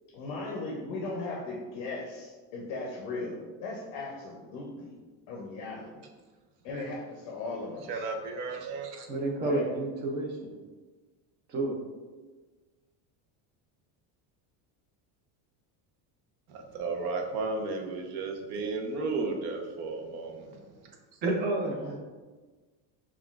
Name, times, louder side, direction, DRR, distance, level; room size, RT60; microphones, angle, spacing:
voice 1, 0.1-5.0 5.3-6.1 6.6-8.0 9.4-9.6, left 2 dB, 50° left, -1 dB, 0.6 m, -37 dB
voice 2, 7.9-9.1 16.5-20.6, right 3 dB, 55° right, 3 dB, 0.7 m, -34 dB
voice 3, 9.1-10.4 11.5-11.8 21.2-22.0, right 2 dB, 25° right, 0 dB, 0.3 m, -30 dB
5.6 x 2.4 x 2.3 m, 1.3 s
cardioid pair, 175°, 45 cm